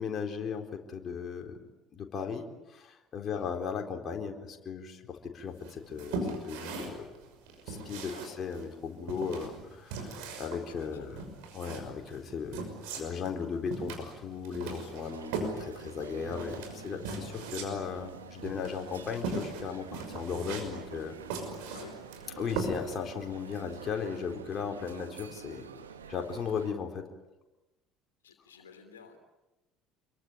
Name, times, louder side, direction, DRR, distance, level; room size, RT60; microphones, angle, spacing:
voice 1, 0.0-1.6 1.9-7.1 7.7-11.2 11.5-12.6 12.9-21.2 22.4-25.7 26.1-27.1, left 6 dB, 40° left, 3 dB, 4.0 m, -36 dB
sound 1, 5.6-23.1, right 3 dB, 65° right, 5.9 m, -39 dB
voice 2, 10.7-11.1 14.8-15.0 21.7-22.0 28.2-29.2, left 6 dB, 80° left, 6 dB, 3.1 m, -52 dB
sound 2, 15.1-26.7, right 7 dB, 80° right, 1.5 m, -48 dB
28.0 x 23.0 x 9.2 m, 1.1 s
figure-of-eight pair, 60°, 0 cm